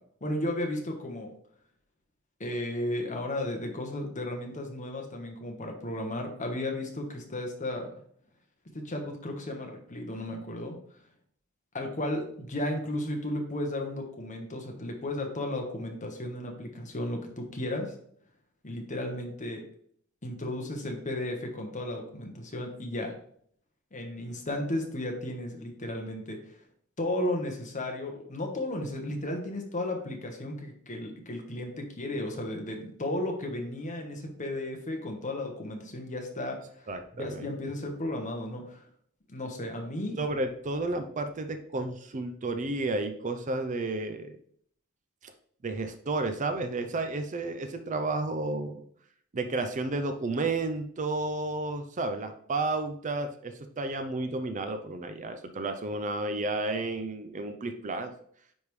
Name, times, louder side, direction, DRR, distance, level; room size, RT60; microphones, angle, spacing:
voice 1, 0.2-1.3 2.4-7.9 8.7-10.8 11.7-17.9 18.6-19.6 20.2-23.1 23.9-26.6 27.0-38.8 39.3-40.2, left 1 dB, 35° left, 3 dB, 1.2 m, -34 dB
voice 2, 36.9-37.5 40.2-44.4 45.2-45.3 45.6-48.8 49.3-58.1, right 2 dB, 35° right, 7 dB, 0.5 m, -32 dB
9.5 x 3.6 x 3.2 m, 0.62 s
head